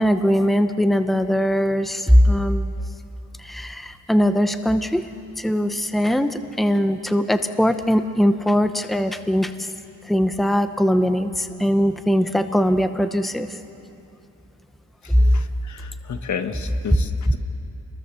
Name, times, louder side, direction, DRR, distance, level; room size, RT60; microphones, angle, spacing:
voice 1, 0.0-2.7 3.4-5.1 5.4-9.7 10.1-13.5, equal, ahead, 9 dB, 0.9 m, -20 dB
voice 2, 15.3-17.4, left 6 dB, 65° left, 8 dB, 1.4 m, -32 dB
27.5 x 22.0 x 6.9 m, 2.7 s
cardioid pair, 110°, 31 cm